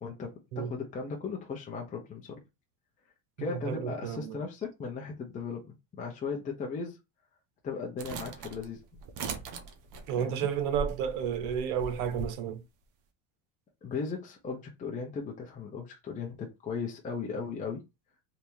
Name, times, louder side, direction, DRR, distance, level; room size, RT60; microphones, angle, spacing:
voice 1, 0.0-2.4 3.4-7.0 7.6-8.8 10.1-10.5 13.8-17.8, left 5 dB, 20° left, 0.7 m, -37 dB
voice 2, 3.5-4.4 10.1-12.6, right 8 dB, 85° right, 0.9 m, -32 dB
sound 1, 8.0-12.3, right 3 dB, 45° right, 0.8 m, -40 dB
3.5 x 2.7 x 2.9 m
cardioid pair, 145°, 43 cm